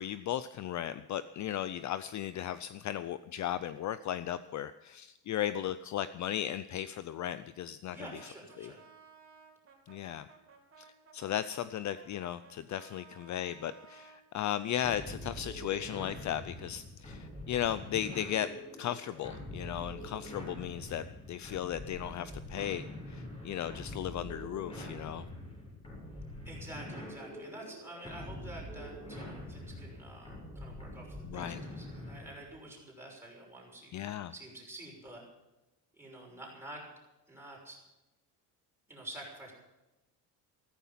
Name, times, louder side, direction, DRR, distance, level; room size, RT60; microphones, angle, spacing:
voice 1, 0.0-8.2 8.6-8.7 9.9-10.3 10.8-10.9 11.1-18.5 18.8-25.2 31.2-31.6 33.9-34.3, left 11 dB, 45° left, 14 dB, 0.6 m, -36 dB
voice 2, 7.9-8.8 26.4-35.2 35.9-36.8 37.3-37.8 38.9-39.5, right 1 dB, 5° right, -2 dB, 6.1 m, -48 dB
Brass instrument, 8.1-14.2, right 5 dB, 30° right, 3.7 m, -58 dB
sound 1, 14.8-32.4, left 1 dB, 15° left, 7.4 m, -45 dB
15.0 x 14.0 x 5.8 m, 1.0 s
cardioid pair, 155°, 41 cm